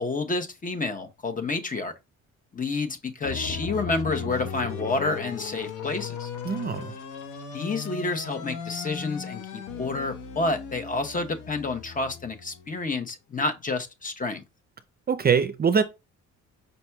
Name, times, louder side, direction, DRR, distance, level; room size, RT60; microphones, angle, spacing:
voice 1, 0.0-1.9 2.5-6.3 7.5-9.4 9.7-14.4, left 3 dB, 25° left, 0.9 m, -29 dB
sound 1, 3.2-12.8, left 6 dB, 90° left, 1.0 m, -37 dB
voice 2, 6.4-6.9 15.1-15.8, right 6 dB, 30° right, 0.5 m, -23 dB
5.4 x 4.2 x 2.3 m
cardioid pair, 90°, 30 cm